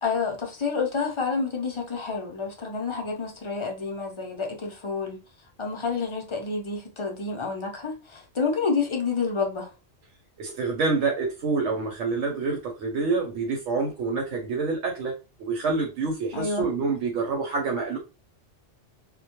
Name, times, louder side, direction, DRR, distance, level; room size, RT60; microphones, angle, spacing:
voice 1, 0.0-5.2 5.6-9.7 16.3-16.7, left 4 dB, 50° left, 0.3 m, -29 dB
voice 2, 10.4-15.1 15.4-18.0, right 4 dB, 85° right, 0.9 m, -27 dB
2.1 x 2.1 x 2.8 m
omnidirectional pair, 1.2 m